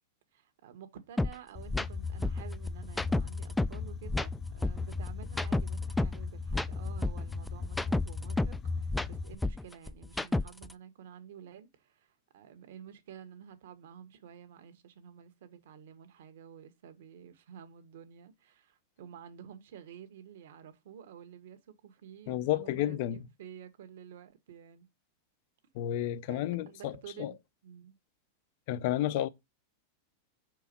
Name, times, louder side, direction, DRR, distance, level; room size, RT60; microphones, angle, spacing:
voice 1, 0.3-24.9 26.3-28.0, right 9 dB, 75° right, 1.4 m, -51 dB
sound 1, 1.2-1.3 1.7-1.9 2.2-3.8 4.1-6.2 6.5-8.6 8.9-10.7, left 2 dB, 5° left, 0.4 m, -31 dB
sound 2, 1.5-9.3, left 4 dB, 25° left, 0.8 m, -38 dB
voice 2, 22.3-23.2 25.7-27.3 28.7-29.3, left 13 dB, 60° left, 0.6 m, -31 dB
5.8 x 4.6 x 5.3 m
hypercardioid pair, 115°, 0 cm